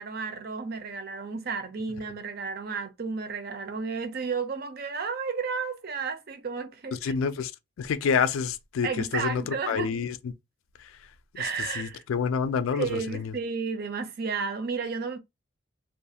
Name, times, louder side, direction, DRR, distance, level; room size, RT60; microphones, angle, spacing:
voice 1, 0.0-7.1 8.8-9.9 11.4-12.0 12.8-15.2, right 5 dB, 45° right, 0.4 m, -32 dB
voice 2, 6.9-7.5 7.8-10.3 10.8-13.4, left 6 dB, 75° left, 0.3 m, -29 dB
2.4 x 2.3 x 2.7 m
head